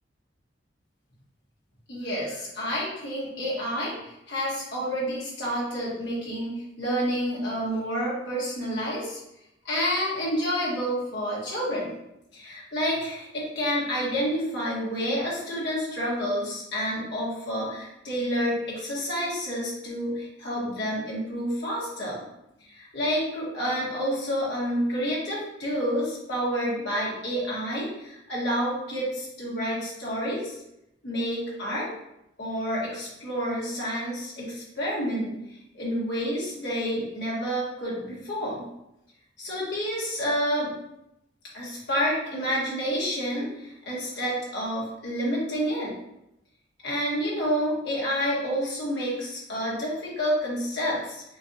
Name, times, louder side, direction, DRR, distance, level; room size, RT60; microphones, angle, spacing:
voice 1, 1.9-9.2 9.6-11.9 12.3-22.2 22.7-30.6 31.0-31.9 32.4-35.4 35.7-38.7 39.4-40.7 41.5-46.0 46.8-51.2, equal, 60° left, -6 dB, 1.4 m, -29 dB
4.5 x 2.4 x 2.7 m, 0.85 s
head